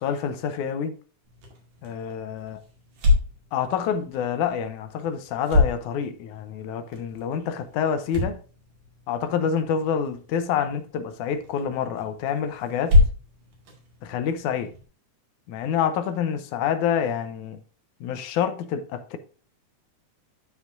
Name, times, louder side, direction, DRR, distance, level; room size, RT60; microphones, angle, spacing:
voice 1, 0.0-1.0 1.8-2.6 3.5-8.4 9.1-13.0 14.0-14.7 15.5-17.6 18.0-19.2, left 8 dB, 80° left, 2.2 m, -27 dB
sound 1, 1.2-14.8, left 3 dB, 85° right, 3.7 m, -28 dB
12.5 x 4.8 x 2.5 m
omnidirectional pair, 3.6 m